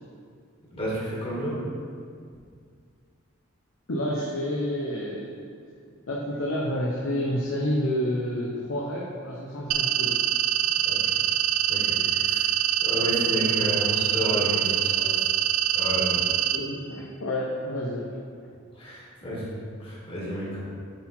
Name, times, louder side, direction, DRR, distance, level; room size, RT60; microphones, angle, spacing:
voice 1, 0.7-1.6 10.9-11.0 11.7-12.5 12.8-15.3 15.7-16.2 18.7-20.6, equal, 30° left, -6 dB, 1.8 m, -31 dB
voice 2, 3.9-5.3 6.1-10.2 16.5-18.2, equal, 85° left, -3 dB, 0.8 m, -29 dB
sound 1, 9.7-16.6, right 11 dB, 85° right, 0.4 m, -24 dB
8.6 x 4.0 x 4.3 m, 2.2 s
head